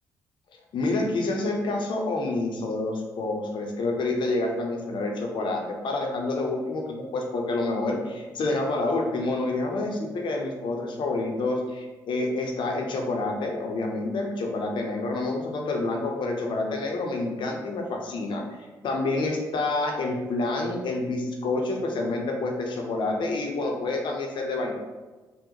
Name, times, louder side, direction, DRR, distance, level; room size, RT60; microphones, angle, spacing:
voice 1, 0.7-18.4 18.8-24.7, left 2 dB, 60° left, 2 dB, 0.6 m, -28 dB
3.8 x 2.1 x 2.8 m, 1.2 s
hypercardioid pair, 45°, 9 cm